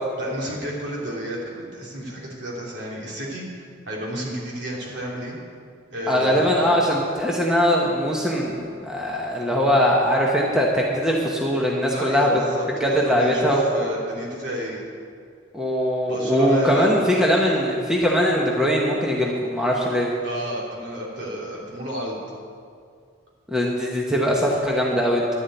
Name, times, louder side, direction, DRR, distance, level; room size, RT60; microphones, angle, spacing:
voice 1, 0.2-3.4 3.9-5.3 5.9-6.8 11.9-14.8 16.0-17.0 20.2-22.2, equal, 60° right, -4 dB, 3.3 m, -31 dB
voice 2, 6.1-12.3 12.8-13.7 15.5-20.1 23.5-25.4, equal, 5° right, -3 dB, 1.1 m, -21 dB
11.0 x 7.4 x 9.1 m, 2.2 s
head